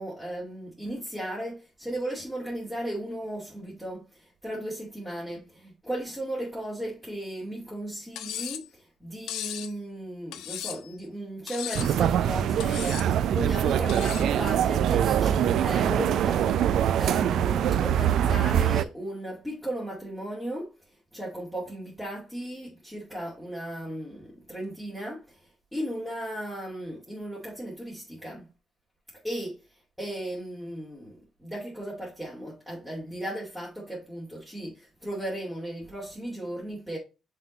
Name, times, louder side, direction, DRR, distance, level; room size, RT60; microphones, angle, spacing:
voice 1, 0.0-13.0 13.3-20.7 21.1-25.4 25.7-28.5 29.2-29.6 30.0-37.0, right 1 dB, 5° left, 2.4 m, -36 dB
Cutlery silverware, 8.2-8.7 9.3-9.7 10.3-10.9 11.5-12.0 12.6-13.1 13.9-14.3, left 11 dB, 90° left, 0.5 m, -36 dB
sound 1, 11.7-18.8, right 10 dB, 75° right, 0.4 m, -24 dB
5.9 x 3.8 x 4.2 m
cardioid pair, 90°, 0 cm